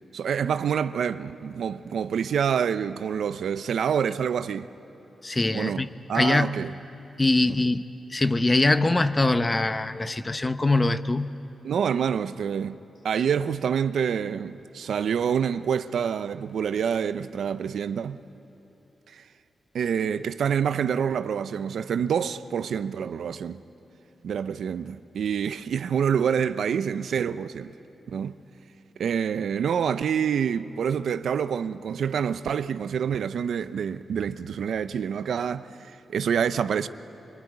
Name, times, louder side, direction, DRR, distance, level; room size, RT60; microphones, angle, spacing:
voice 1, 0.1-4.7 5.5-5.8 6.1-6.7 11.6-12.8 13.0-18.2 19.1-19.2 19.7-23.6 24.2-27.7 28.1-28.4 29.0-36.9, right 7 dB, 80° right, 0.7 m, -27 dB
voice 2, 5.2-5.9 6.1-6.6 7.2-7.8 8.1-11.3, left 2 dB, 25° left, 0.9 m, -23 dB
24.5 x 24.0 x 9.6 m
cardioid pair, 90°, 0 cm